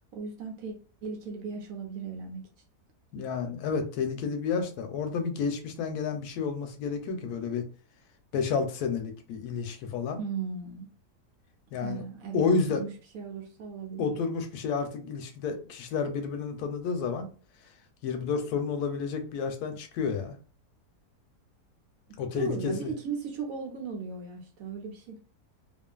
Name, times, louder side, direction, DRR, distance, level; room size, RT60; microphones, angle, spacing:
voice 1, 0.1-0.7 1.0-2.5 10.2-10.9 11.8-14.1 22.3-25.2, right 5 dB, 65° right, 1.0 m, -37 dB
voice 2, 3.1-7.6 8.3-10.2 11.7-12.1 12.3-12.8 14.0-17.3 18.0-20.3 22.2-22.9, left 5 dB, 75° left, 1.1 m, -30 dB
2.7 x 2.4 x 2.2 m
omnidirectional pair, 1.7 m